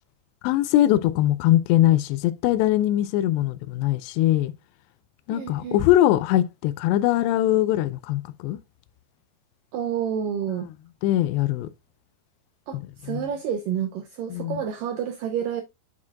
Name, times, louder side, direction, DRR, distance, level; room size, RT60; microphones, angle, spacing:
voice 1, 0.4-4.5 5.3-8.6 11.0-11.7 13.1-13.3 14.3-14.6, left 13 dB, 85° left, 2.7 m, -21 dB
voice 2, 5.3-5.8 9.7-10.7 12.7-15.6, right 8 dB, 85° right, 1.9 m, -29 dB
9.7 x 5.9 x 2.3 m
omnidirectional pair, 5.0 m